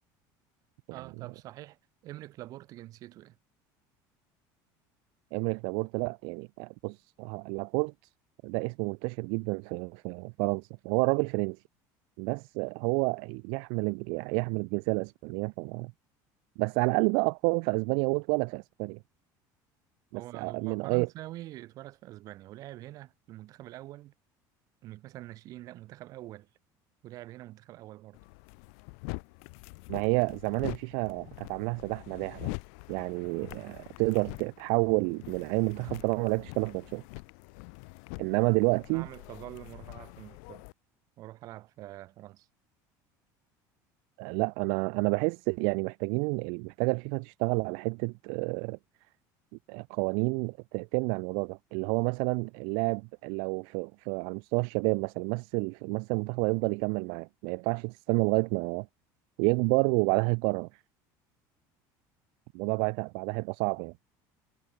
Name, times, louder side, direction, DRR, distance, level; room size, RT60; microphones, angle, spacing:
voice 1, 0.9-3.4 20.1-24.1 24.8-26.5 27.0-28.2 38.4-40.6 41.2-42.5, right 16 dB, 40° right, 3.2 m, -45 dB
voice 2, 5.3-7.9 8.4-11.6 12.2-15.9 16.6-19.0 20.1-21.1 29.9-32.5 32.9-37.0 38.2-39.1 44.2-48.8 49.7-58.9 59.4-60.7 62.5-63.9, right 40 dB or more, 65° right, 0.4 m, -29 dB
sound 1, 28.1-40.7, left 39 dB, 70° left, 0.6 m, -44 dB
cardioid pair, 175°, 9 cm